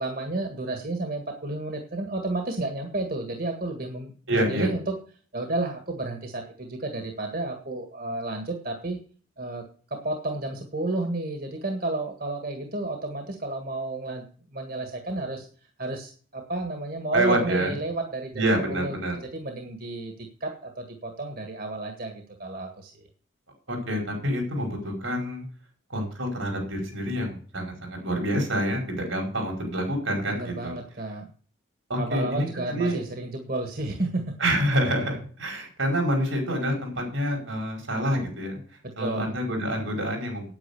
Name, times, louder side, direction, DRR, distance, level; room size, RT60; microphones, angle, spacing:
voice 1, 0.0-4.9 5.3-9.0 9.4-14.2 14.5-15.5 15.8-18.9 19.2-23.1 30.3-31.3 32.0-34.3 39.0-39.3, right 2 dB, 50° right, 4 dB, 1.7 m, -32 dB
voice 2, 4.3-4.7 17.1-17.7 18.3-19.2 23.7-25.4 25.9-30.7 31.9-33.0 34.4-38.6 39.0-40.5, right 1 dB, 85° right, 2 dB, 5.3 m, -27 dB
9.4 x 8.9 x 6.9 m, 0.43 s
head